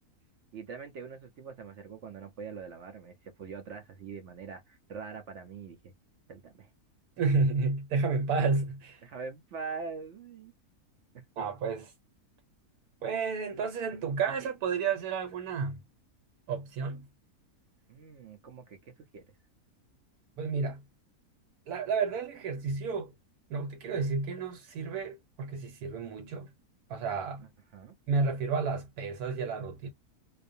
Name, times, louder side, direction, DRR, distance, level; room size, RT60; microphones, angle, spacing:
voice 1, 0.5-5.9 6.3-6.7 9.0-10.5 11.4-11.5 17.9-19.3 27.7-27.9, right 5 dB, 60° right, 0.8 m, -43 dB
voice 2, 7.2-9.0 11.4-11.9 13.0-15.8 16.5-17.1 20.4-20.8 21.7-23.1 23.5-26.5 26.9-27.4 28.1-29.9, right 4 dB, 85° right, 1.2 m, -31 dB
2.5 x 2.1 x 2.5 m
omnidirectional pair, 1.6 m